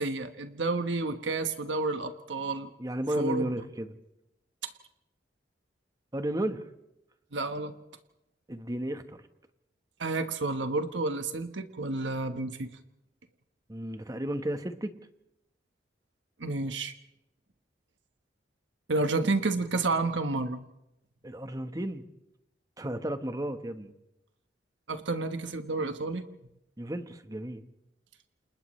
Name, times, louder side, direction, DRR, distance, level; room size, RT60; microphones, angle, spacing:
voice 1, 0.0-2.7 3.2-3.5 4.6-4.7 7.3-7.7 10.0-12.7 16.4-16.9 18.9-20.6 24.9-26.2, right 3 dB, 90° right, 8 dB, 1.2 m, -30 dB
voice 2, 2.8-3.9 6.1-6.6 8.5-9.2 13.7-14.9 21.2-22.0 22.8-23.9 26.8-27.6, right 1 dB, 20° right, 8 dB, 1.2 m, -33 dB
29.0 x 28.0 x 3.2 m, 0.87 s
head